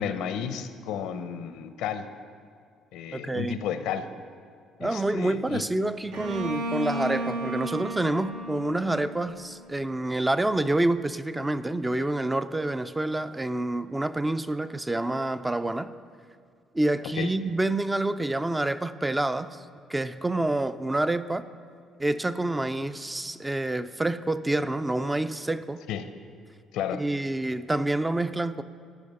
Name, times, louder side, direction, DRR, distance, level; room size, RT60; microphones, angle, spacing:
voice 1, 0.0-2.1 2.9-4.1 4.8-5.6 17.2-17.4 25.9-26.1 26.7-27.0, left 8 dB, 85° left, 11 dB, 0.6 m, -32 dB
voice 2, 3.1-3.6 4.8-15.9 16.7-19.6 19.9-21.4 22.0-25.8 27.0-28.6, right 2 dB, 10° right, 12 dB, 0.3 m, -27 dB
Bowed string instrument, 6.1-9.9, right 1 dB, 85° right, 1.2 m, -34 dB
14.0 x 5.1 x 6.4 m, 2.2 s
cardioid pair, 115°, 0 cm